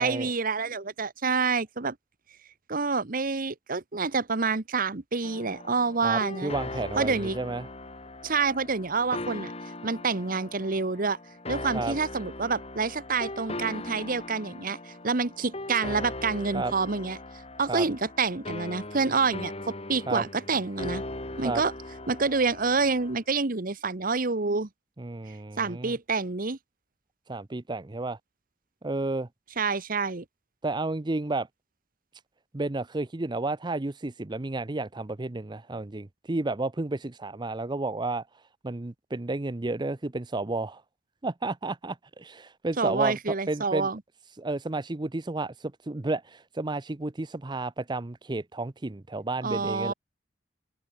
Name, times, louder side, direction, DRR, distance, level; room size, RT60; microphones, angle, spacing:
voice 1, 0.0-1.9 2.7-6.5 7.0-7.4 8.2-9.5 9.8-11.2 11.5-17.2 17.6-19.5 19.9-21.0 21.4-21.7 22.1-24.7 25.6-26.6 29.6-30.2 42.8-44.0 49.4-49.9, right 4 dB, 50° right, 1.2 m, -27 dB
sound 1, 5.2-23.2, left 2 dB, 35° left, 4.0 m, -39 dB
voice 2, 6.0-7.7 11.7-11.9 16.5-16.7 17.7-17.9 20.1-20.2 21.4-21.6 25.0-25.9 27.3-28.2 28.8-29.3 30.6-31.5 32.5-38.3 38.6-40.8 41.2-43.9 44.4-49.9, right 2 dB, 25° right, 0.7 m, -31 dB
head